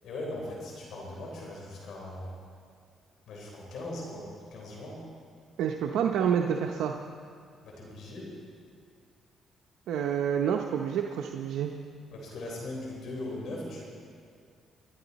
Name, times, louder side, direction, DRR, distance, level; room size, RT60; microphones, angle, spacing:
voice 1, 0.0-2.4 3.3-5.0 7.6-8.3 12.1-13.8, left 1 dB, 80° left, -2 dB, 3.7 m, -39 dB
voice 2, 5.6-6.9 9.9-11.7, right 8 dB, 85° right, 2 dB, 0.7 m, -28 dB
22.0 x 12.0 x 4.1 m, 2.2 s
cardioid pair, 90°, 0 cm